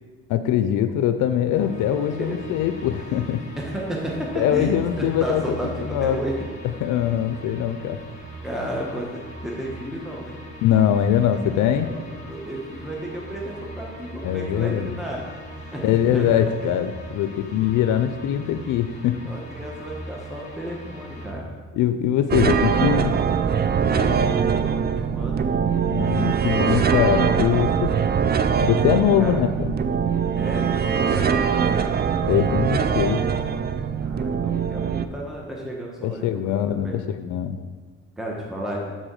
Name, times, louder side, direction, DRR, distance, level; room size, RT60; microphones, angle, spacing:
voice 1, 0.3-3.4 4.4-6.2 6.6-8.0 10.6-11.9 14.2-15.0 15.8-19.3 21.8-23.1 25.9-27.9 28.7-29.7 32.3-33.3 36.0-37.6, left 10 dB, 85° left, 9 dB, 0.5 m, -22 dB
sound 1, 1.5-21.3, equal, 25° left, 1.6 m, -40 dB
voice 2, 1.9-2.6 3.6-6.3 8.4-10.4 11.9-15.3 15.7-16.3 19.3-21.5 23.9-25.5 29.2-29.3 30.4-31.9 34.0-37.0 38.2-38.9, equal, ahead, -2 dB, 1.1 m, -32 dB
sound 2, 22.3-35.0, right 7 dB, 35° right, 0.4 m, -22 dB
6.3 x 4.3 x 6.3 m, 1.5 s
cardioid pair, 90°, 30 cm